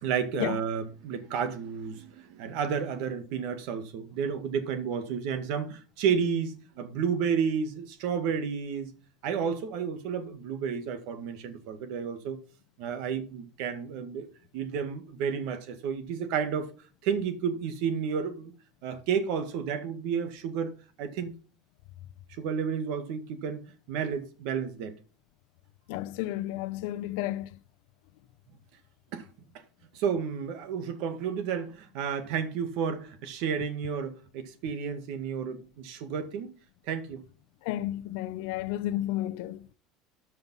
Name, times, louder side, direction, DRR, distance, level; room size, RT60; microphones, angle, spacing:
voice 1, 0.0-8.9 9.2-12.4 12.8-14.3 14.5-16.7 17.0-18.5 18.8-20.7 21.0-21.3 22.4-25.0 29.1-29.3 29.9-36.5 36.9-37.2, right 7 dB, 55° right, 1.8 m, -31 dB
voice 2, 25.9-27.6 37.6-39.7, left 14 dB, 65° left, 0.6 m, -32 dB
13.5 x 5.6 x 5.4 m
cardioid pair, 170°, 0 cm